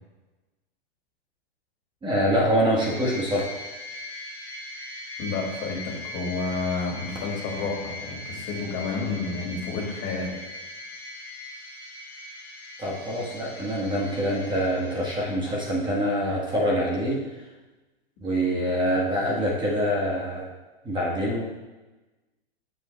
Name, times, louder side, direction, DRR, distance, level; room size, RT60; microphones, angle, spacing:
voice 1, 2.0-3.4 12.8-17.4 18.2-20.5 20.8-21.4, equal, 15° right, -4 dB, 1.3 m, -25 dB
sound 1, 2.8-15.6, left 2 dB, 10° left, 1.6 m, -40 dB
voice 2, 5.2-10.3, left 4 dB, 40° left, -1 dB, 2.1 m, -30 dB
8.2 x 7.7 x 2.2 m, 1.1 s
hypercardioid pair, 125°, 32 cm